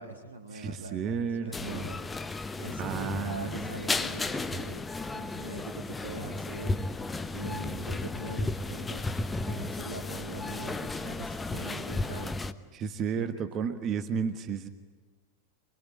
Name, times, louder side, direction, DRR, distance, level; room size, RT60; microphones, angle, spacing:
voice 1, 0.0-2.0 2.6-6.8 7.3-9.1 9.5-12.4 13.1-13.3, right 2 dB, 75° right, -1 dB, 2.1 m, -42 dB
voice 2, 0.5-1.9 2.8-3.8 12.7-14.7, right 6 dB, 30° right, 10 dB, 1.4 m, -33 dB
sound 1, 1.5-12.5, left 3 dB, 10° left, 1.1 m, -34 dB
26.0 x 21.5 x 9.8 m, 1.3 s
figure-of-eight pair, 90°, 0 cm